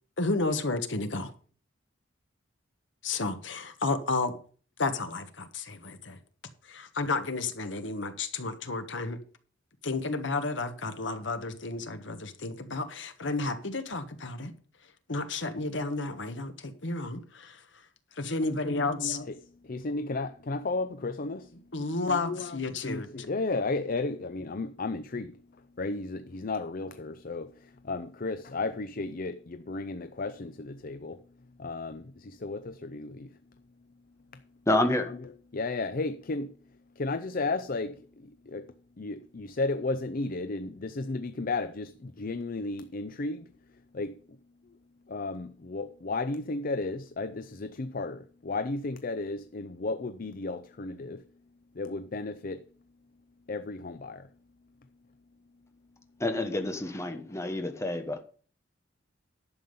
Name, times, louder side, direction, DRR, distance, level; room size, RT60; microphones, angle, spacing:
voice 1, 0.2-1.3 3.0-4.3 4.8-6.2 6.7-9.2 9.8-14.5 15.1-17.5 18.2-19.2 21.7-23.3, left 3 dB, 70° left, 1.4 m, -32 dB
voice 2, 18.5-34.0 34.3-34.5 34.9-44.8 45.0-51.3 51.7-52.7 53.5-54.3 56.5-56.9 57.2-57.5 57.7-58.2, left 3 dB, 50° left, 0.6 m, -34 dB
voice 3, 34.7-35.1 56.2-58.2, left 1 dB, 15° left, 1.2 m, -28 dB
11.5 x 7.2 x 5.4 m
head